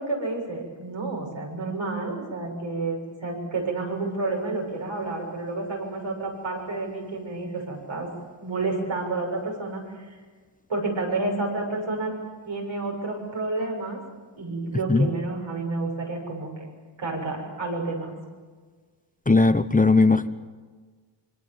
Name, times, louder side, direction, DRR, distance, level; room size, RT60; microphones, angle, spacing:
voice 1, 0.0-8.1 8.4-10.2 10.7-12.1 12.4-14.0 14.4-16.7 17.0-18.2, right 3 dB, 90° right, 0 dB, 7.2 m, -30 dB
voice 2, 19.3-20.3, left 3 dB, 20° left, 11 dB, 0.9 m, -18 dB
25.5 x 24.5 x 7.2 m, 1.5 s
wide cardioid pair, 105°, 45 cm